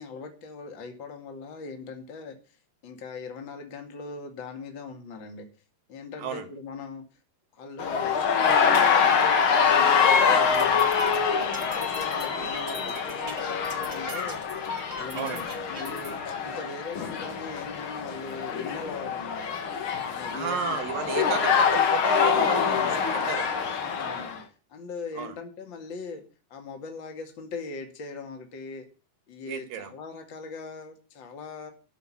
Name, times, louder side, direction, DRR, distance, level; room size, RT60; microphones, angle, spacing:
voice 1, 0.0-2.4 2.8-5.5 5.9-7.0 7.5-10.9 11.5-14.4 14.9-19.6 20.0-20.8 21.1-21.4 22.4-23.0 23.8-24.4 24.7-26.2 26.5-28.9 29.3-31.7, left 4 dB, 35° left, 5 dB, 2.3 m, -40 dB
voice 2, 6.2-6.5 15.1-15.4 20.3-23.5 25.1-25.4 29.5-29.9, right 8 dB, 65° right, 10 dB, 3.0 m, -33 dB
sound 1, 7.8-24.4, left 6 dB, 55° left, 1.5 m, -25 dB
sound 2, 10.5-16.1, right 3 dB, 25° right, 1.7 m, -42 dB
14.0 x 5.7 x 9.8 m, 0.36 s
omnidirectional pair, 4.7 m